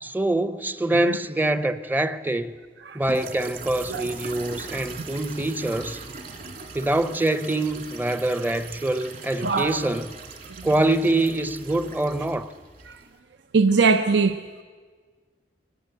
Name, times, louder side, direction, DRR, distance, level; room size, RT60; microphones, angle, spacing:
voice 1, 0.0-2.5 2.9-6.0 6.7-10.1 10.6-12.5, right 1 dB, 10° right, 0.6 m, -25 dB
sound 1, 3.0-13.2, right 3 dB, 50° right, 2.7 m, -40 dB
voice 2, 9.4-9.8 10.6-10.7 12.9-13.0 13.5-14.6, right 4 dB, 85° right, 0.7 m, -22 dB
23.0 x 19.5 x 8.0 m
head